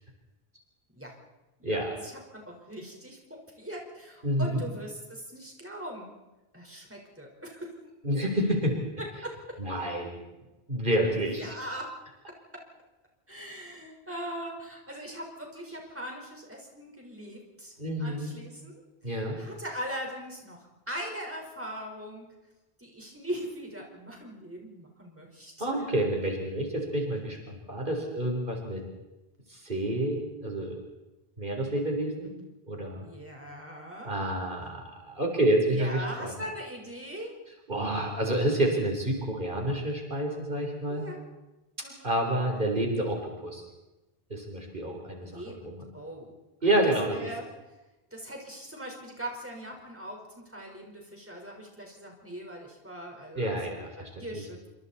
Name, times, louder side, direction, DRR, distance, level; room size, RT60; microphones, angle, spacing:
voice 1, 1.6-6.1 6.5-7.7 9.2-9.6 11.4-11.9 13.3-17.7 18.0-22.2 22.8-25.7 33.0-34.1 35.7-37.3 40.9-41.2 41.8-42.1 45.2-46.3 46.6-47.5 48.1-54.7, equal, 15° right, 0 dB, 4.6 m, -40 dB
voice 2, 4.2-4.6 8.0-8.8 9.6-10.2 10.7-11.4 17.8-18.3 19.0-19.4 25.6-28.8 29.5-30.8 31.4-32.3 32.7-33.0 34.1-36.3 37.7-41.0 42.0-43.6 44.3-45.8 46.6-47.2 53.4-54.4, right 1 dB, 55° right, 1 dB, 4.2 m, -29 dB
27.5 x 25.5 x 4.3 m, 1.0 s
omnidirectional pair, 1.0 m